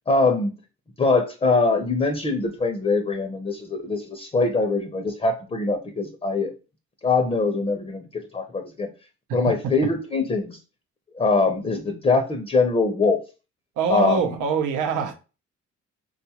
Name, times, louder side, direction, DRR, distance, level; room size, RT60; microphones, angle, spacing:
voice 1, 0.1-0.6 1.0-6.5 7.0-8.9 9.3-10.6 11.1-13.2 13.9-14.2, left 3 dB, 20° left, 0.5 m, -23 dB
voice 2, 13.8-15.1, right 6 dB, 85° right, 0.6 m, -24 dB
3.6 x 2.3 x 2.8 m
cardioid pair, 90°, 30 cm